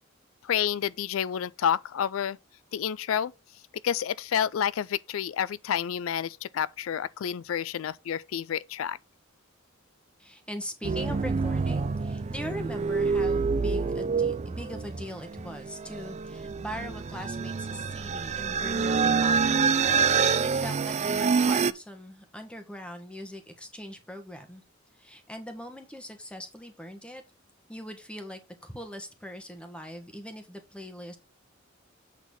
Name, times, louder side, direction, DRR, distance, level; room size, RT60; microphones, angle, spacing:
voice 1, 0.4-2.4 2.7-3.3 3.8-9.0, left 9 dB, 85° left, 0.4 m, -29 dB
voice 2, 10.2-19.7 20.2-24.6 25.0-27.2 27.7-31.2, equal, 5° left, 1.4 m, -41 dB
sound 1, 10.8-21.7, right 5 dB, 35° right, 0.4 m, -27 dB
8.3 x 4.0 x 5.4 m
head